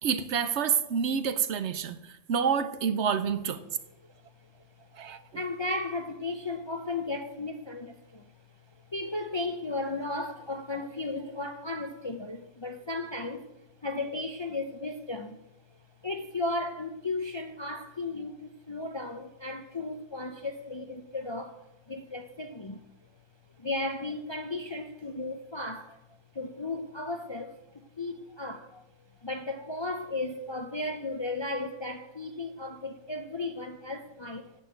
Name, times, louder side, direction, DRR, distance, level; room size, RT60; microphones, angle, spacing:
voice 1, 0.0-3.8 5.0-5.2, right 7 dB, 65° right, 1.0 m, -28 dB
voice 2, 4.0-4.5 4.8-15.5 15.7-22.8 23.6-34.5, left 2 dB, 35° left, 0.4 m, -35 dB
10.5 x 7.1 x 7.8 m
omnidirectional pair, 1.3 m